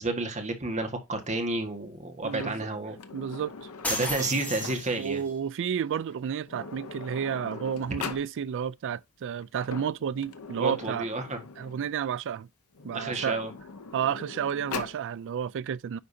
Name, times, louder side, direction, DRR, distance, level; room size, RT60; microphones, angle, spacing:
voice 1, 0.0-3.0 3.9-5.3 10.6-11.4 12.9-13.5, right 2 dB, 30° right, 1.5 m, -31 dB
Sliding door, 2.2-5.1 6.1-6.2 6.4-8.3 9.4-11.9 12.7-15.0, left 5 dB, 75° left, 0.8 m, -41 dB
voice 2, 2.2-2.7 3.1-3.7 4.0-4.3 5.0-11.1 11.6-12.5 12.8-13.4 13.9-16.0, right 8 dB, 55° right, 0.3 m, -31 dB
sound 1, 3.8-5.3, left 1 dB, 5° left, 2.0 m, -33 dB
10.0 x 3.8 x 2.7 m
head